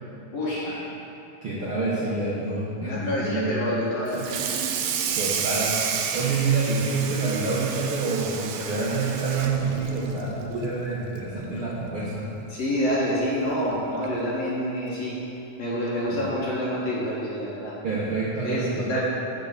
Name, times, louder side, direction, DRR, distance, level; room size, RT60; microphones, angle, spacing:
voice 1, 0.3-0.7 2.8-4.4 12.5-15.2 15.6-17.8 18.4-19.0, equal, 55° left, -7 dB, 2.2 m, -27 dB
voice 2, 1.4-3.5 4.2-4.3 5.1-5.8 6.1-12.3 16.1-16.2 17.8-19.0, right 4 dB, 60° right, -8 dB, 1.4 m, -27 dB
Water tap faucet / Sink (filling or washing), 4.1-10.8 11.1-11.4 11.7-11.8 12.3-12.4 13.5-13.6 14.0-14.3, right 7 dB, 80° right, 1.6 m, -30 dB
6.8 x 6.2 x 6.9 m, 2.8 s
omnidirectional pair, 4.0 m